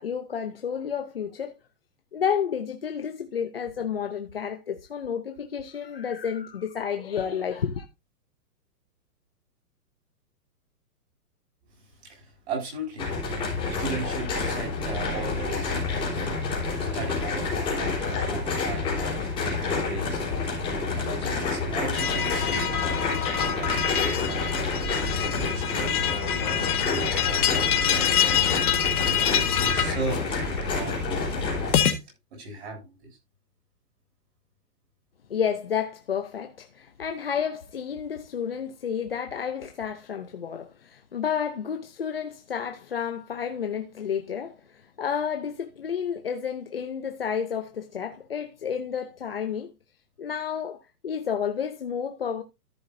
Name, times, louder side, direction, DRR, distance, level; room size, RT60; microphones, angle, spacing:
voice 1, 0.0-1.5 2.1-7.9 35.3-49.7 50.2-52.4, left 7 dB, 40° left, 0.5 m, -31 dB
voice 2, 12.0-13.1 13.7-15.8 16.8-20.2 20.9-28.4 29.0-31.4 32.3-33.1, right 2 dB, 40° right, 7.5 m, -37 dB
sound 1, 13.0-31.7, left 3 dB, 10° left, 3.8 m, -29 dB
sound 2, 21.9-32.0, left 9 dB, 60° left, 1.7 m, -26 dB
14.0 x 7.9 x 2.7 m
hypercardioid pair, 180°, 49 cm